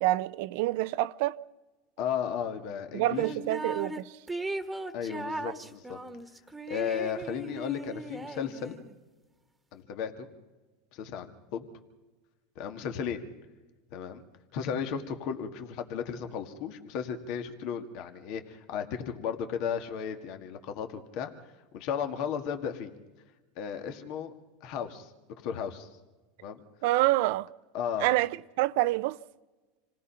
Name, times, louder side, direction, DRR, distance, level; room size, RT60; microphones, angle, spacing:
voice 1, 0.0-1.4 2.9-4.1 26.8-27.5 28.0-29.2, right 17 dB, 65° right, 0.5 m, -27 dB
voice 2, 2.0-3.2 4.9-6.0 6.7-8.7 9.7-10.3 10.9-11.7 12.6-13.2 13.9-14.2 14.5-21.3 21.7-22.9 23.6-24.3 24.6-25.1 25.4-25.9 26.4-26.6 27.7-28.1, left 7 dB, 60° left, 1.8 m, -34 dB
sound 1, 3.2-4.0 4.3-8.9, right 2 dB, 10° right, 1.5 m, -38 dB
27.0 x 18.0 x 5.7 m
supercardioid pair, 110°, 0 cm